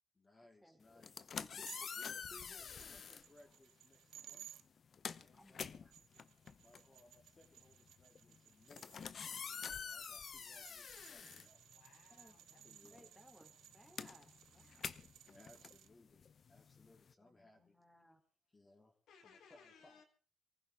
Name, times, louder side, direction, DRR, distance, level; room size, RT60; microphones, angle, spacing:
voice 1, 0.1-1.3 2.0-4.5 5.2-5.9 6.6-9.0 9.4-11.6 12.6-13.0 15.3-17.7 18.5-19.0 19.2-20.0, left 2 dB, 25° left, 2 dB, 3.1 m, -65 dB
sound 1, 0.9-3.3 4.2-4.4 4.7-12.2 12.5-17.1, left 6 dB, 50° left, 0.8 m, -48 dB
voice 2, 1.4-3.3 5.3-6.0 12.1-12.3 12.8-15.0 17.2-18.2, equal, 5° left, 6 dB, 3.4 m, -65 dB
sound 2, 1.7-4.6 5.7-15.9, right 12 dB, 80° right, 0.8 m, -61 dB
voice 3, 11.7-12.7 19.1-20.0, left 6 dB, 75° left, 5 dB, 3.6 m, -64 dB
24.0 x 15.0 x 3.6 m, 0.39 s
cardioid pair, 90°, 0 cm